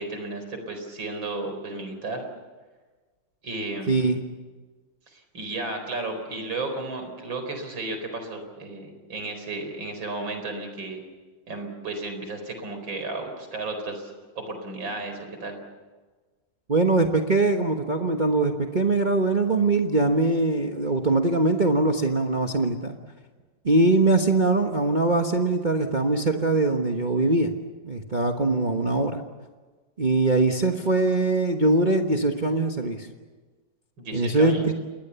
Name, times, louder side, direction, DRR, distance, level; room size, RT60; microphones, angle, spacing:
voice 1, 0.0-2.2 3.4-4.1 5.1-11.0 11.5-14.1 14.4-15.6 34.0-34.7, right 2 dB, 85° right, 6 dB, 5.1 m, -33 dB
voice 2, 3.9-4.2 16.7-23.0 23.6-27.5 27.8-29.2 30.0-33.1 34.1-34.7, right 2 dB, 30° right, 3 dB, 1.3 m, -22 dB
29.0 x 21.0 x 7.0 m, 1.3 s
omnidirectional pair, 2.1 m